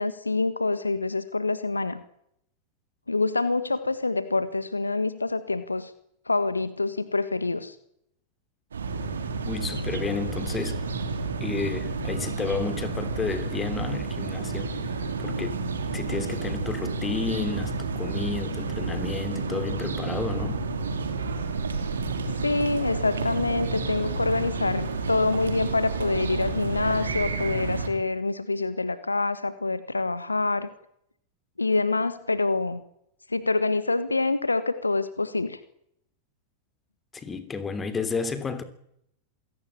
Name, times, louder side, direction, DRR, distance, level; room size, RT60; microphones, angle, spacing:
voice 1, 0.0-2.0 3.1-5.9 6.3-7.7 22.4-30.7 31.6-32.8 33.3-35.6, left 3 dB, 80° left, 1.5 m, -26 dB
sound 1, 8.7-27.9, right 4 dB, 70° right, 3.2 m, -30 dB
voice 2, 9.5-10.8 11.4-14.7 15.2-15.7 15.9-20.6 37.1-38.6, left 4 dB, 15° left, 3.2 m, -31 dB
27.0 x 17.5 x 8.8 m
figure-of-eight pair, 90°, 0 cm